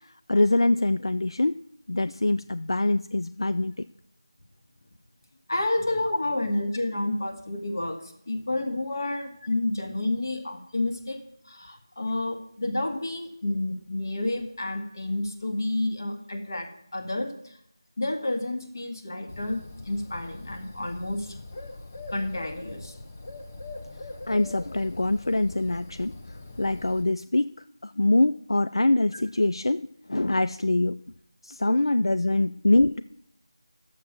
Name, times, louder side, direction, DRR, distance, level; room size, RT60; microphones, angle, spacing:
voice 1, 0.3-1.6 1.9-3.7 24.3-26.1 26.6-27.5 27.8-31.0 31.4-33.0, left 2 dB, 70° left, 13 dB, 0.4 m, -24 dB
voice 2, 5.5-17.6 18.0-21.4 22.1-23.0, left 2 dB, 45° left, 4 dB, 1.7 m, -30 dB
Bird, 19.3-27.0, left 2 dB, 20° left, 0.6 m, -42 dB
11.0 x 7.4 x 6.0 m, 0.73 s
figure-of-eight pair, 175°, 3 cm